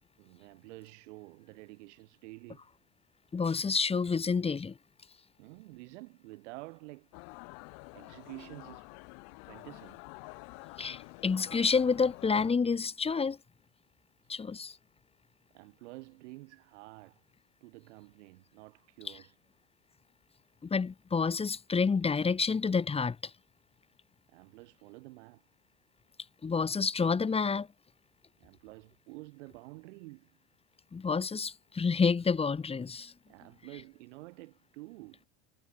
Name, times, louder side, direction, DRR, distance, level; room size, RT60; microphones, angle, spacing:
voice 1, 0.2-2.6 5.4-7.1 7.9-8.9 9.5-10.0 14.2-14.5 15.5-17.2 17.6-19.4 24.3-25.4 28.4-30.4 33.3-35.2, right 22 dB, 80° right, 3.4 m, -50 dB
voice 2, 3.3-4.8 10.8-13.4 14.3-14.8 20.6-23.3 26.4-27.7 30.9-33.1, left 5 dB, 15° left, 1.6 m, -29 dB
sound 1, 7.1-12.5, left 40 dB or more, 70° left, 5.8 m, -49 dB
supercardioid pair, 120°, 35 cm